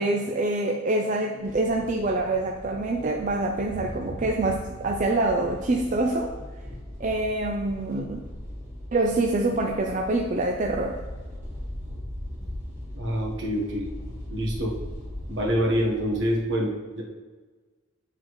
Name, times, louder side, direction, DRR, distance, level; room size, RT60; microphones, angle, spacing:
voice 1, 0.0-6.3 7.0-8.2 8.9-11.0, right 2 dB, 40° right, 1 dB, 0.4 m, -25 dB
sound 1, 1.4-16.4, left 1 dB, 15° right, 1.6 m, -39 dB
voice 2, 12.9-13.9 14.3-14.7 15.3-17.0, equal, 65° right, -1 dB, 1.2 m, -26 dB
8.2 x 3.8 x 3.1 m, 1.3 s
head